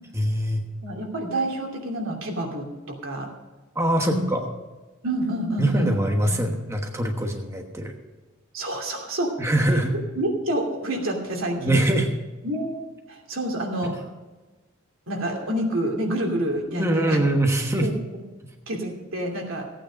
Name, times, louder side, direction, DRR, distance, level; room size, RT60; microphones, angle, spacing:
voice 1, 0.1-0.7 3.7-4.5 5.6-7.9 9.4-9.9 11.6-12.1 13.8-13.9 16.8-17.9 18.4-18.5, right 1 dB, 15° right, 2 dB, 1.2 m, -23 dB
voice 2, 0.8-3.3 4.0-4.2 5.0-5.9 6.3-6.4 8.5-9.3 9.9-11.8 12.4-12.7 13.1-13.9 15.1-17.2 17.8-18.2 18.7-19.7, right 1 dB, 85° right, 1 dB, 2.8 m, -28 dB
15.5 x 9.0 x 5.1 m, 1.2 s
head